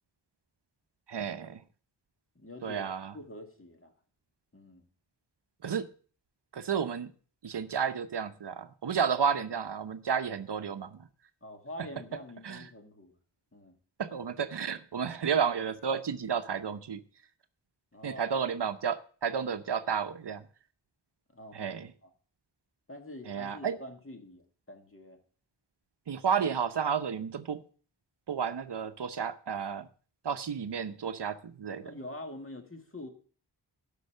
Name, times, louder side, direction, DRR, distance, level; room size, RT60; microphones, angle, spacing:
voice 1, 1.1-1.6 2.6-3.1 5.6-5.9 6.5-7.1 7.4-11.1 12.4-12.6 14.0-17.0 18.0-20.4 21.5-21.9 23.3-23.8 26.1-27.6 28.3-29.9 30.2-31.9, right 7 dB, 70° right, 11 dB, 0.8 m, -32 dB
voice 2, 2.4-3.9 4.5-4.9 11.4-13.2 13.5-13.7 17.9-18.4 21.3-22.1 22.9-25.2 31.8-33.1, left 1 dB, 30° left, 4 dB, 2.1 m, -46 dB
12.0 x 5.5 x 6.4 m, 0.42 s
wide cardioid pair, 70°, 43 cm